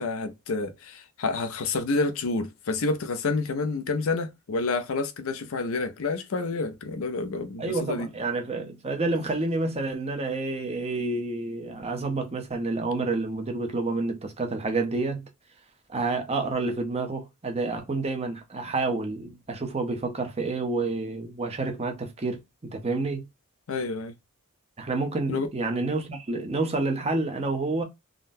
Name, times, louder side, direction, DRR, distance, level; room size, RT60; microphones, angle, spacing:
voice 1, 0.0-8.1 23.7-24.1 25.3-25.5, left 3 dB, 65° left, 0.5 m, -29 dB
voice 2, 7.6-15.3 15.9-23.2 24.8-27.8, right 3 dB, 30° right, 0.7 m, -29 dB
3.7 x 2.1 x 2.5 m
head